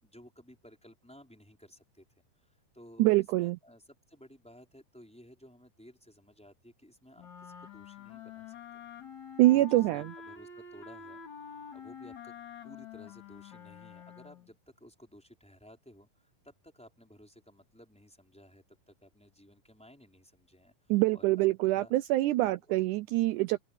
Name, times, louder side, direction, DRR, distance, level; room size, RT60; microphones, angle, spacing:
voice 1, 0.0-2.0 2.4-8.8 9.5-20.7 21.1-21.9 22.4-22.8 23.3-23.5, equal, ahead, 4.9 m, -56 dB
voice 2, 3.0-3.6 9.4-10.1 20.9-23.7, right 17 dB, 85° right, 1.7 m, -25 dB
sound 1, 7.2-14.5, left 6 dB, 55° left, 4.1 m, -47 dB
open air
omnidirectional pair, 4.1 m